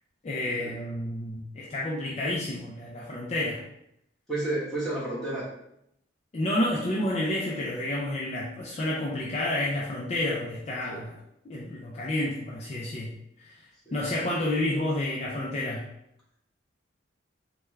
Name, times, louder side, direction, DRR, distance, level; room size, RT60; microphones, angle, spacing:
voice 1, 0.2-3.6 6.3-11.2 11.4-13.6 13.9-15.9, left 1 dB, 35° left, -4 dB, 0.4 m, -30 dB
voice 2, 4.3-5.5 10.9-11.0 13.8-14.0, right 2 dB, 5° left, -9 dB, 1.1 m, -31 dB
3.4 x 2.2 x 3.2 m, 0.77 s
head